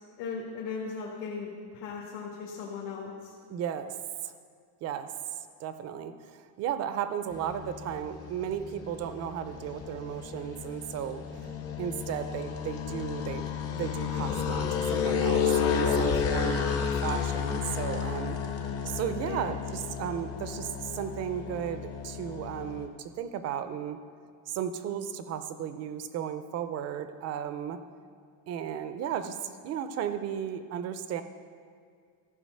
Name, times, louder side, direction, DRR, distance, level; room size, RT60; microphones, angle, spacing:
voice 1, 0.2-3.3 19.2-19.5, left 5 dB, 70° left, -4 dB, 1.8 m, -38 dB
voice 2, 3.5-3.9 4.2-4.3 4.8-5.1 5.6-11.2 11.8-18.4 18.8-24.0 24.5-27.8 28.5-29.4 29.6-31.2, right 9 dB, 40° right, 10 dB, 0.5 m, -35 dB
sound 1, 7.3-22.9, left 7 dB, 35° left, 0.7 m, -32 dB
14.5 x 4.9 x 6.4 m, 2.2 s
cardioid pair, 175°, 43 cm